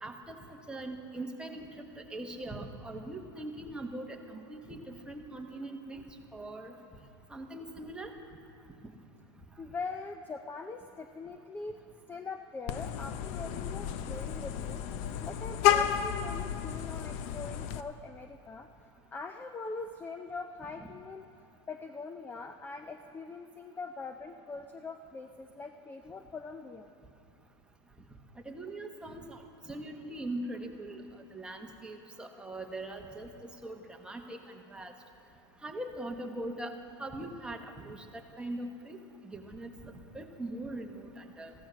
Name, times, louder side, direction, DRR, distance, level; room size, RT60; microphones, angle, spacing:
voice 1, 0.0-0.4 0.7-6.0 6.3-6.7 7.3-8.1 20.8-20.9 28.4-31.0 31.3-33.3 33.6-34.9 35.6-36.7 37.0-39.0 39.2-41.5, right 1 dB, 5° right, 2 dB, 1.3 m, -41 dB
voice 2, 9.6-11.8 12.1-21.3 21.7-26.9, left 4 dB, 15° left, 7 dB, 0.5 m, -42 dB
Vehicle horn car horn honking, 12.7-17.8, left 10 dB, 50° left, 0.7 m, -31 dB
15.0 x 13.5 x 6.3 m, 2.6 s
supercardioid pair, 125°, 15 cm